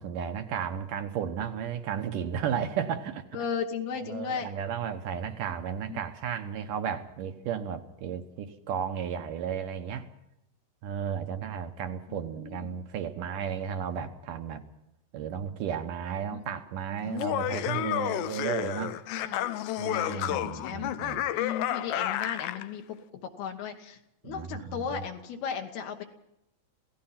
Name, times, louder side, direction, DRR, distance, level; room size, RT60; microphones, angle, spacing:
voice 1, 0.0-3.3 4.0-10.1 10.8-14.6 15.1-19.0 19.8-21.2 24.2-25.0, right 8 dB, 70° right, 8 dB, 2.2 m, -34 dB
voice 2, 3.3-4.5 5.9-6.0 12.1-12.7 16.4-16.6 19.1-19.5 19.8-20.9 21.4-24.0 24.2-26.0, left 7 dB, 75° left, 3 dB, 3.3 m, -36 dB
Laughter, 17.1-22.7, left 13 dB, 90° left, 3.0 m, -31 dB
27.0 x 17.0 x 5.8 m, 0.84 s
omnidirectional pair, 4.7 m